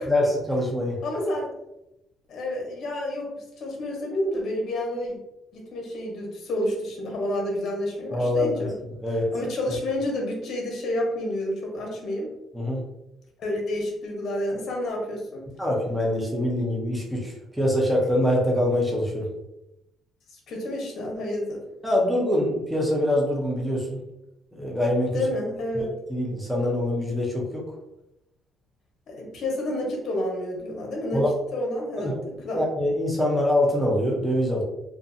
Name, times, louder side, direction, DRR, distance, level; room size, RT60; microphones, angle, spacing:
voice 1, 0.1-1.0 8.1-8.7 9.0-9.3 12.5-12.8 15.6-19.3 21.8-24.0 24.5-25.2 25.7-27.6 31.1-31.3 32.0-32.2 32.5-34.6, left 1 dB, 5° right, -3 dB, 0.5 m, -24 dB
voice 2, 1.0-1.5 2.3-5.2 5.5-8.7 9.3-12.3 13.4-15.4 20.3-21.6 25.1-25.9 29.1-31.2 31.5-32.2 32.4-32.6, left 1 dB, 45° left, -1 dB, 0.8 m, -29 dB
2.5 x 2.4 x 2.5 m, 0.89 s
cardioid pair, 165°, 0 cm